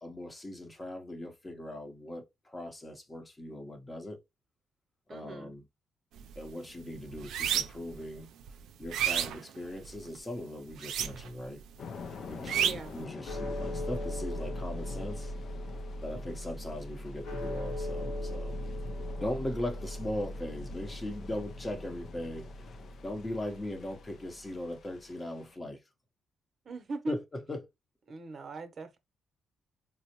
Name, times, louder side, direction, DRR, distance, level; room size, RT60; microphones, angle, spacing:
voice 1, 0.0-4.2 5.1-5.6 6.4-8.3 8.8-11.6 12.3-15.3 16.0-18.6 19.2-25.8 27.1-27.6, left 1 dB, 20° left, 0.8 m, -39 dB
voice 2, 5.1-5.5 12.6-13.0 26.6-27.2 28.1-29.0, right 3 dB, 45° right, 0.7 m, -40 dB
sound 1, 6.2-6.4 6.8-7.9 8.4-10.1 10.7-11.5 11.7-13.0, right 9 dB, 80° right, 0.3 m, -31 dB
Thunder / Rain, 11.8-25.6, left 5 dB, 60° left, 0.4 m, -47 dB
sound 2, 13.2-23.7, equal, 80° left, 1.1 m, -39 dB
4.3 x 2.0 x 2.8 m
cardioid pair, 90°, 0 cm